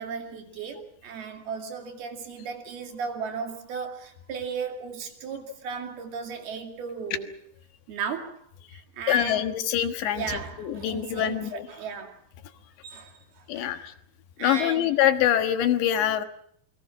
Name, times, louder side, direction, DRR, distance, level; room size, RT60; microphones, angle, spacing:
voice 1, 0.0-7.3 7.9-9.6 10.1-12.2 12.8-13.9 14.4-14.9, right 6 dB, 65° right, 5 dB, 4.1 m, -36 dB
voice 2, 9.1-10.2 10.6-11.7 13.5-13.9 14.4-16.2, left 11 dB, 80° left, 8 dB, 3.7 m, -24 dB
28.5 x 22.5 x 5.9 m, 0.65 s
omnidirectional pair, 5.1 m